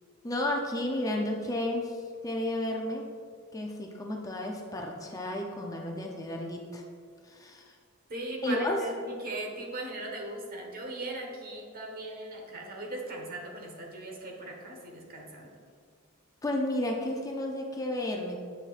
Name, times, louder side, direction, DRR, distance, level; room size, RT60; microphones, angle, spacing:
voice 1, 0.2-3.1 3.5-6.8 7.3-7.7 8.4-8.8 16.4-18.4, left 1 dB, 15° left, 0 dB, 0.5 m, -32 dB
voice 2, 8.1-15.5, right 2 dB, 45° right, 1 dB, 1.2 m, -39 dB
7.9 x 6.5 x 2.5 m, 2.1 s
head